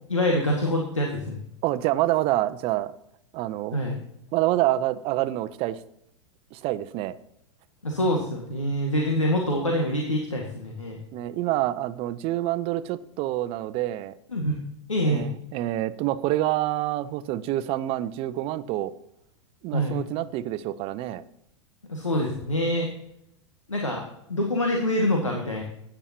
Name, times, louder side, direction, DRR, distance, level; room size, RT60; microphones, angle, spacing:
voice 1, 0.1-1.4 3.7-4.0 7.8-11.0 14.3-14.6 14.9-15.3 19.7-20.0 21.9-22.9 23.7-24.0 24.3-25.6, equal, 85° left, 1 dB, 1.8 m, -25 dB
voice 2, 1.6-2.9 3.3-3.8 4.3-5.8 6.5-7.1 11.1-14.1 15.0-18.9 19.6-21.2, right 15 dB, 35° right, 15 dB, 0.7 m, -27 dB
13.5 x 10.0 x 2.8 m, 0.78 s
figure-of-eight pair, 95°, 16 cm